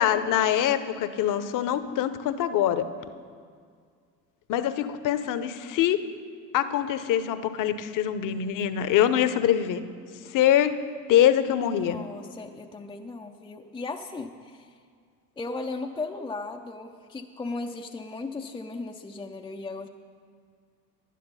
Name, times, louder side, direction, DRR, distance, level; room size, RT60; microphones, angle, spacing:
voice 1, 0.0-2.9 4.5-6.1 6.5-9.8 10.3-10.8 11.1-12.0, left 10 dB, 40° left, 12 dB, 0.8 m, -24 dB
voice 2, 11.5-14.8 15.4-19.9, left 3 dB, 10° left, 2 dB, 0.5 m, -36 dB
11.5 x 10.0 x 5.5 m, 2.1 s
hypercardioid pair, 75°, 49 cm